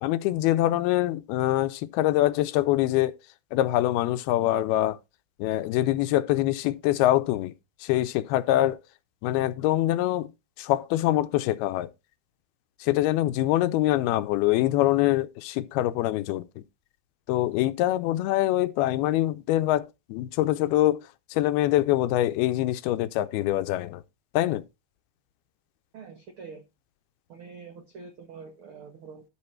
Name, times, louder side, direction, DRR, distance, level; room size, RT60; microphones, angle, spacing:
voice 1, 0.0-3.1 3.5-5.0 5.4-7.5 7.8-8.8 9.2-10.3 10.6-11.9 12.8-16.4 17.3-21.0 21.3-24.0 24.3-24.6, left 15 dB, 80° left, 2.5 m, -24 dB
voice 2, 25.9-26.6 27.3-29.2, right 5 dB, 85° right, 1.1 m, -45 dB
13.0 x 4.6 x 4.4 m
omnidirectional pair, 4.5 m